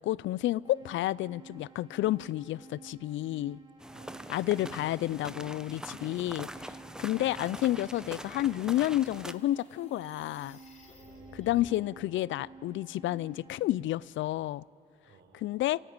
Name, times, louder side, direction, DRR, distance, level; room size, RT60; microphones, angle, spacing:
voice 1, 0.0-3.6 4.3-10.6 11.4-14.6 15.4-15.8, left 15 dB, 75° left, 23 dB, 0.4 m, -30 dB
sound 1, 0.6-13.5, right 4 dB, 25° right, 3.8 m, -53 dB
sound 2, 3.8-9.3, right 1 dB, 5° right, 0.8 m, -43 dB
voice 2, 3.9-4.8 7.2-7.6 10.9-11.7 15.0-15.5, right 5 dB, 70° right, 3 dB, 4.9 m, -59 dB
sound 3, 8.2-11.8, left 3 dB, 35° left, 3.9 m, -55 dB
26.5 x 16.5 x 8.8 m, 2.8 s
cardioid pair, 90°, 20 cm